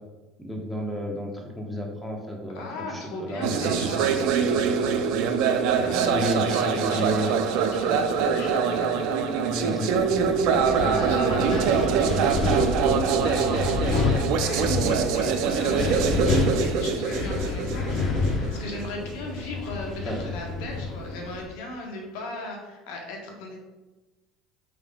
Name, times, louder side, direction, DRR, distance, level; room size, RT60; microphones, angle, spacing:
voice 1, 0.4-3.8 6.1-7.4 9.5-9.9 10.8-11.4 16.8-17.0 17.6-17.7 20.0-20.6, equal, 5° left, 0 dB, 1.0 m, -32 dB
voice 2, 2.6-5.0 5.7-9.5 10.5-12.7 13.0-18.0 18.4-23.6, left 2 dB, 75° left, 1 dB, 0.9 m, -37 dB
sound 1, 3.4-19.3, right 6 dB, 65° right, 0.4 m, -24 dB
Wind, 9.9-21.4, left 3 dB, 45° left, 0.8 m, -29 dB
4.8 x 3.7 x 2.3 m, 1.1 s
hypercardioid pair, 80°, 0 cm